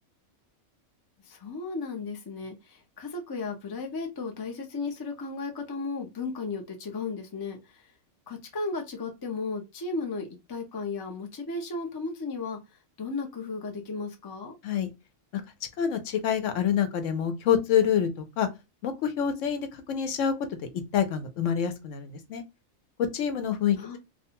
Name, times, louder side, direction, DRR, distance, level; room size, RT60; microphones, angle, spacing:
voice 1, 1.2-7.8 8.3-12.6 13.0-14.6 23.8-24.0, left 4 dB, 35° left, 0.4 m, -35 dB
voice 2, 15.8-18.5 18.8-20.3 20.9-22.4 23.1-23.8, left 8 dB, 70° left, 0.9 m, -26 dB
2.4 x 2.2 x 2.7 m
omnidirectional pair, 1.4 m